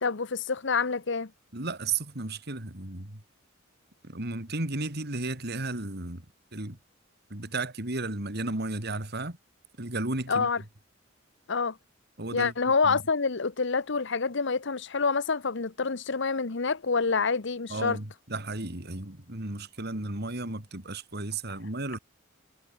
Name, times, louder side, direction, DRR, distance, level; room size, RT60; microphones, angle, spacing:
voice 1, 0.0-1.3 10.3-10.6 11.5-11.8 12.3-18.0, left 4 dB, 65° left, 1.0 m, -27 dB
voice 2, 1.5-3.2 4.0-6.3 6.5-6.8 7.3-9.4 9.8-10.5 12.2-12.5 12.8-13.0 17.7-22.0, right 2 dB, 55° right, 3.5 m, -34 dB
head